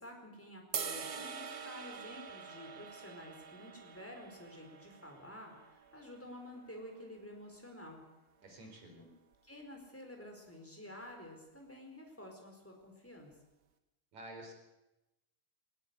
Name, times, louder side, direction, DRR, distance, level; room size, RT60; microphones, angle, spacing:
voice 1, 0.0-8.0 9.4-13.3, left 1 dB, 5° left, 2 dB, 4.5 m, -50 dB
sound 1, 0.7-7.0, right 6 dB, 45° right, 1.3 m, -45 dB
voice 2, 8.4-9.1 14.1-14.5, right 1 dB, 65° right, 2 dB, 5.7 m, -50 dB
19.5 x 18.0 x 8.4 m, 0.98 s
omnidirectional pair, 3.6 m